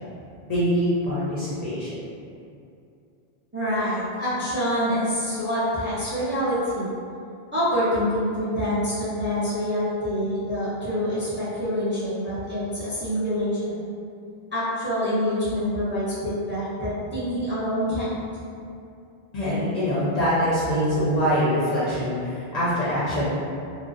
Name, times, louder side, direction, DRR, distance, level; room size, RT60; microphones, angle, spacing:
voice 1, 0.5-1.9 19.3-23.3, equal, 55° left, -10 dB, 0.5 m, -24 dB
voice 2, 3.5-6.9 7.5-13.8 14.5-18.1, equal, 15° right, -11 dB, 0.4 m, -26 dB
2.5 x 2.1 x 2.4 m, 2.5 s
omnidirectional pair, 1.0 m